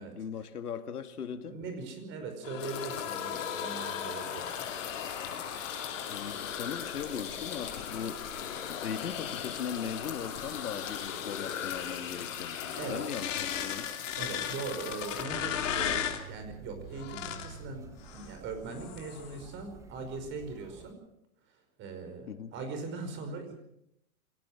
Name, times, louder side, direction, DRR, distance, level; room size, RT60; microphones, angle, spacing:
voice 1, 0.0-1.6 6.1-8.2 8.7-13.9 22.3-22.5, left 7 dB, 85° left, 8 dB, 2.1 m, -39 dB
voice 2, 1.5-4.7 12.8-13.0 14.2-21.0 21.5-23.5, right 4 dB, 25° right, 6 dB, 5.2 m, -40 dB
sound 1, 2.4-16.2 17.0-17.6 18.0-18.3 18.7-19.4, left 9 dB, 55° left, 3.5 m, -37 dB
sound 2, 2.6-15.2, left 8 dB, 40° left, 5.7 m, -43 dB
sound 3, 15.3-20.9, right 5 dB, 5° right, 0.7 m, -49 dB
25.5 x 18.5 x 6.1 m, 0.78 s
hypercardioid pair, 140°, 45 cm